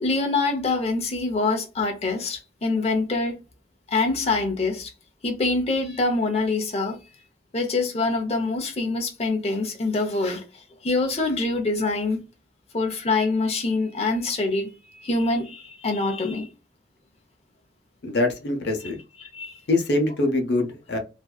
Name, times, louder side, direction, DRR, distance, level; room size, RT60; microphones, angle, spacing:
voice 1, 0.0-3.3 3.9-4.9 5.2-7.0 7.5-12.2 12.7-16.5 19.2-19.6, left 3 dB, 35° left, 0.6 m, -25 dB
voice 2, 18.0-19.0 19.7-21.0, left 2 dB, 75° left, 0.7 m, -23 dB
2.6 x 2.2 x 2.2 m
head